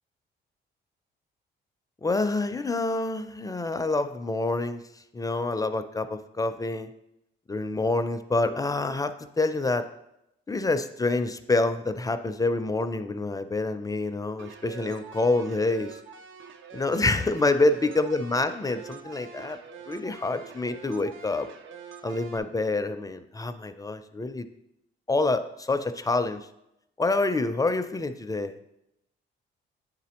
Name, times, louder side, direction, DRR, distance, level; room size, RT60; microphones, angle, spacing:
voice 1, 2.0-4.8 5.1-6.9 7.5-9.9 10.5-16.0 16.7-19.6 19.9-21.5 22.0-24.5 25.1-26.5 27.0-28.6, left 2 dB, 20° left, 9 dB, 0.4 m, -27 dB
sound 1, 14.4-22.4, right 6 dB, 75° right, 0.6 m, -45 dB
9.3 x 4.1 x 2.9 m, 0.84 s
cardioid pair, 90°, 20 cm